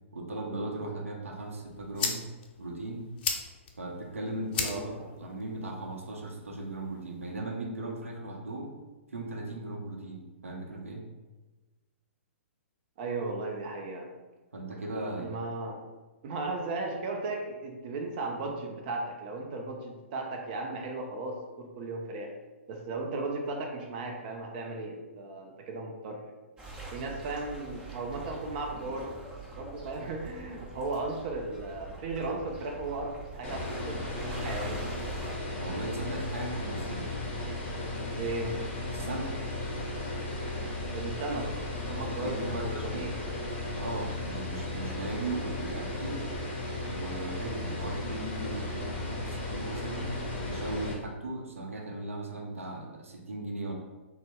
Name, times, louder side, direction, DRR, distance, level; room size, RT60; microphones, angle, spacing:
voice 1, 0.1-2.2 2.6-3.1 3.8-8.8 9.1-11.0 14.5-15.4 35.6-37.1 38.9-39.3 41.9-43.1 43.8-46.3 46.9-50.2 50.5-53.7, right 2 dB, 85° right, 0 dB, 0.7 m, -37 dB
sound 1, 1.4-7.4, left 5 dB, 50° left, 0.5 m, -38 dB
voice 2, 4.6-5.1 13.0-14.1 15.2-15.8 16.2-22.3 22.7-26.3 26.9-29.2 29.5-34.9 38.2-38.6 40.9-41.5 41.9-43.2, right 2 dB, 45° right, 2 dB, 0.5 m, -36 dB
sound 2, 26.6-35.3, right 2 dB, 15° right, 0.9 m, -44 dB
sound 3, 33.4-50.9, left 2 dB, 30° left, 1.0 m, -35 dB
3.9 x 2.1 x 3.5 m, 1.2 s
hypercardioid pair, 125°, 7 cm